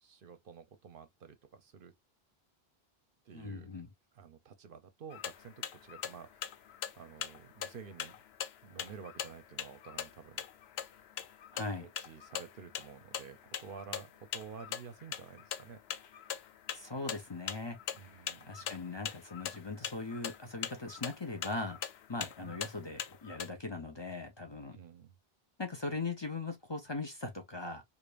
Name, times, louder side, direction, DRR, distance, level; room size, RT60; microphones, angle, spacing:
voice 1, 0.0-1.9 3.3-3.7 4.1-6.4 7.0-8.2 8.6-10.4 11.8-15.8 17.9-18.8 22.4-22.6 24.7-25.1, right 6 dB, 60° right, 0.8 m, -50 dB
voice 2, 3.3-3.9 11.5-11.9 16.7-17.8 18.4-21.8 22.1-24.8 25.6-27.8, left 3 dB, 30° left, 0.7 m, -40 dB
sound 1, 5.1-23.5, left 9 dB, 75° left, 0.8 m, -43 dB
5.0 x 2.5 x 2.3 m
omnidirectional pair, 1.1 m